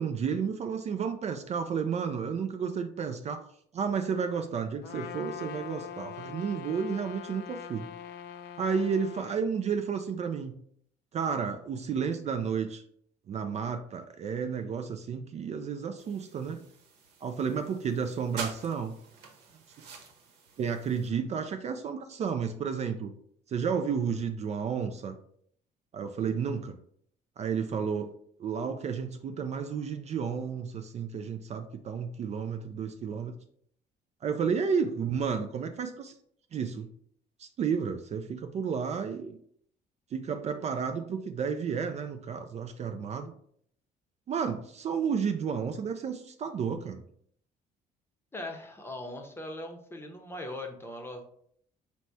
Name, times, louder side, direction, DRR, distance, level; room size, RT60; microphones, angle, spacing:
voice 1, 0.0-3.4 3.7-7.9 8.6-10.5 11.1-12.8 13.3-16.6 17.2-19.0 19.8-19.9 20.6-23.1 23.5-25.2 25.9-26.8 27.4-28.1 28.4-33.3 34.2-36.1 36.5-36.9 37.4-39.4 40.1-43.3 44.3-47.0, right 6 dB, 40° right, 6 dB, 0.4 m, -32 dB
Trumpet, 4.8-9.4, left 9 dB, 80° left, 0.4 m, -42 dB
sound 1, 16.0-21.1, right 5 dB, 80° right, 0.9 m, -46 dB
voice 2, 48.3-51.3, left 1 dB, 15° left, 3 dB, 0.8 m, -40 dB
4.0 x 2.2 x 4.5 m, 0.64 s
cardioid pair, 110°, 17 cm